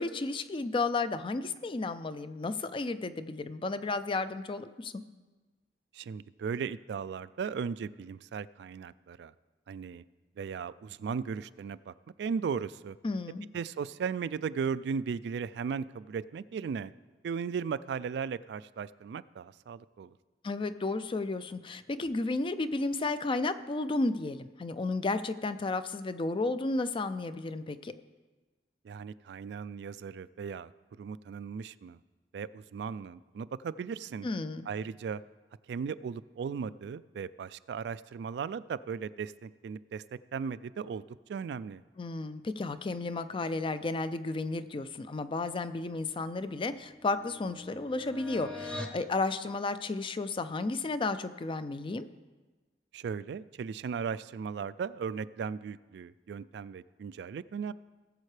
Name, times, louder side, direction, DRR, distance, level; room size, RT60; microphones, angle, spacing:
voice 1, 0.0-5.0 13.0-13.5 20.4-27.9 34.2-34.7 42.0-52.1, left 3 dB, 30° left, 12 dB, 0.4 m, -33 dB
voice 2, 5.9-9.3 9.7-10.0 10.4-13.0 13.5-16.9 17.2-20.2 28.8-30.7 31.0-32.0 32.3-34.3 34.7-35.2 35.7-41.8 52.9-57.7, right 6 dB, 65° right, 16 dB, 0.3 m, -37 dB
sound 1, 45.9-49.0, left 2 dB, 5° left, 0.8 m, -44 dB
18.5 x 7.4 x 3.3 m, 1.2 s
head